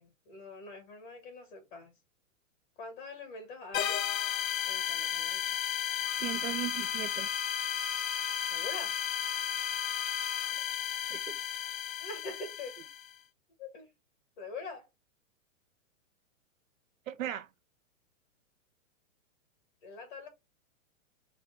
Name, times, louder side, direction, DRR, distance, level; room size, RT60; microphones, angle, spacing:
voice 1, 0.0-1.9 2.8-4.1 4.6-5.6 8.5-9.0 12.0-12.7 13.6-13.9 14.4-14.9 19.8-20.3, left 3 dB, 35° left, 1.8 m, -44 dB
sound 1, 3.7-13.1, left 10 dB, 80° left, 0.7 m, -34 dB
Bowed string instrument, 6.0-10.5, right 1 dB, 10° right, 0.7 m, -45 dB
voice 2, 6.2-7.3 11.1-11.4 17.1-17.5, right 12 dB, 75° right, 0.7 m, -37 dB
3.3 x 3.2 x 4.1 m
hypercardioid pair, 175°, 40 cm